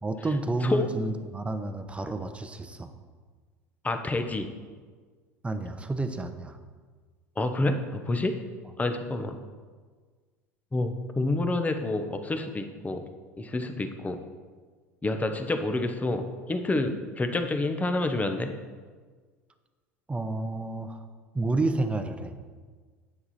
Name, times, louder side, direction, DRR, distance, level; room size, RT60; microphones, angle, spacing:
voice 1, 0.0-2.9 5.4-6.6 20.1-21.0 21.3-22.4, right 2 dB, 15° right, 8 dB, 0.9 m, -30 dB
voice 2, 0.6-0.9 3.8-4.5 7.4-8.4 8.8-9.4 10.7-13.0 13.4-14.2 15.0-18.5, left 2 dB, 15° left, 7 dB, 1.0 m, -28 dB
9.5 x 7.5 x 4.3 m, 1.5 s
hypercardioid pair, 75°, 9 cm